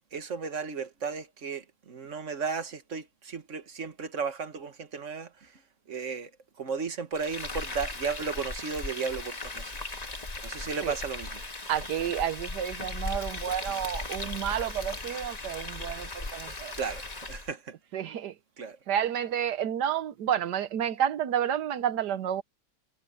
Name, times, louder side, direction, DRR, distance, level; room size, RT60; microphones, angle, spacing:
voice 1, 0.1-5.5 5.9-6.3 6.6-9.8 10.4-11.4 16.8-17.8 18.6-18.8, right 5 dB, 45° right, 1.8 m, -34 dB
Frying (food), 7.1-17.5, left 2 dB, 25° left, 1.6 m, -37 dB
voice 2, 11.7-16.7 17.9-18.4 18.9-22.4, right 9 dB, 75° right, 1.5 m, -30 dB
omnidirectional pair, 1.9 m